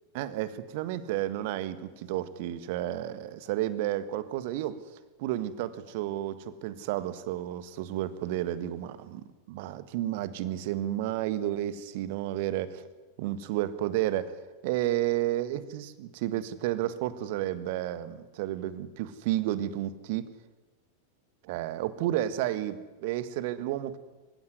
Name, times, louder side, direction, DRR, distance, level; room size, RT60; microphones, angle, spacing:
voice 1, 0.1-4.8 5.2-12.9 13.2-14.3 14.6-20.2 21.5-24.0, right 13 dB, 50° right, 15 dB, 1.6 m, -31 dB
28.0 x 16.0 x 9.6 m, 1.2 s
figure-of-eight pair, 90°, 0 cm